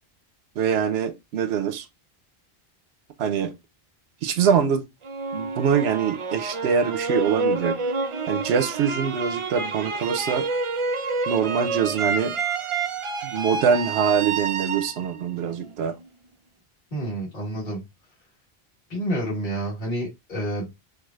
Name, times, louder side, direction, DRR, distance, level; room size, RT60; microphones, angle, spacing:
voice 1, 0.6-1.9 3.2-3.5 4.2-4.9 5.3-7.8 8.3-10.5 11.3-12.4 13.2-16.0, right 7 dB, 85° right, 0.8 m, -24 dB
sound 1, 5.0-16.1, right 4 dB, 50° right, 0.4 m, -28 dB
voice 2, 16.9-17.8 18.9-20.7, right 1 dB, 50° left, 1.5 m, -29 dB
4.7 x 2.3 x 2.3 m
omnidirectional pair, 1.0 m